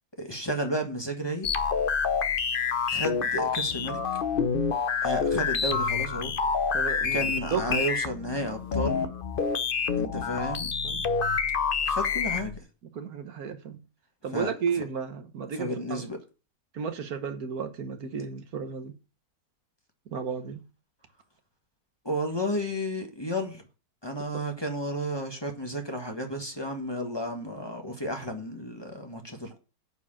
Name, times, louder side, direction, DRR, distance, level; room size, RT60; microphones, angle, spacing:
voice 1, 0.2-1.5 2.9-4.0 5.0-6.3 7.1-9.1 10.0-10.7 11.9-12.5 14.3-14.8 15.5-16.2 18.2-18.3 22.0-23.6 24.0-29.6, equal, 15° left, 1.6 m, -32 dB
sound 1, 1.4-12.6, left 6 dB, 45° left, 0.7 m, -27 dB
voice 2, 6.7-7.8 10.8-11.0 12.9-13.8 14.2-16.0 16.7-18.9 20.1-20.6, right 6 dB, 75° right, 1.7 m, -33 dB
9.6 x 4.8 x 7.5 m
omnidirectional pair, 1.6 m